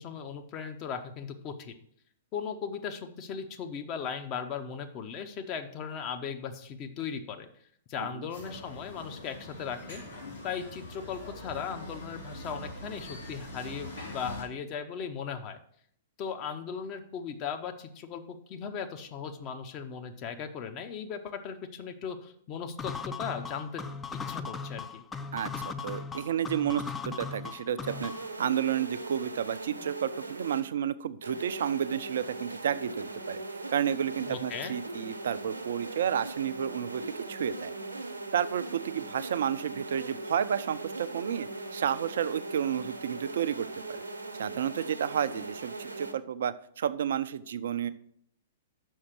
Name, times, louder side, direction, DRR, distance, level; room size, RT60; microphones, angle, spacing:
voice 1, 0.0-1.7 2.3-7.5 7.9-10.0 10.4-15.6 16.2-23.8 24.1-25.0 34.3-34.7, left 7 dB, 30° left, 6 dB, 0.8 m, -37 dB
sound 1, 8.3-14.4, left 1 dB, 80° left, 3.4 m, -43 dB
sound 2, 22.8-28.3, left 5 dB, 10° left, 0.4 m, -38 dB
voice 2, 25.8-28.1 28.4-33.4 33.7-37.0 37.3-37.7 38.3-44.0 44.4-47.9, right 9 dB, 55° right, 14 dB, 0.4 m, -31 dB
sound 3, 27.9-30.6 31.2-46.1, right 2 dB, 80° right, 0.9 m, -40 dB
6.4 x 5.7 x 6.1 m, 0.66 s
figure-of-eight pair, 110°, 0 cm